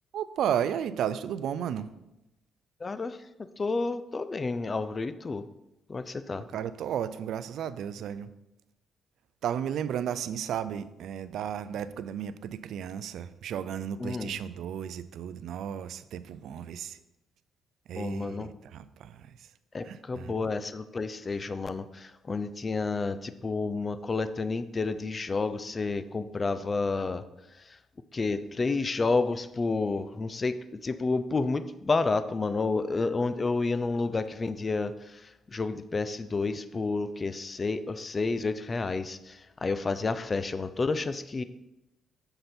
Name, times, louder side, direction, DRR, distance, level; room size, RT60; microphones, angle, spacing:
voice 1, 0.1-1.9 6.5-8.3 9.4-17.0 17.9-19.3 19.8-20.3, right 9 dB, 75° right, 14 dB, 0.5 m, -33 dB
voice 2, 2.8-3.2 3.6-5.5 5.9-6.5 14.0-14.4 17.9-18.5 19.7-27.2 27.5-27.8 28.1-41.4, left 3 dB, 30° left, 12 dB, 0.6 m, -30 dB
7.8 x 6.8 x 4.4 m, 0.92 s
cardioid pair, 90°, 0 cm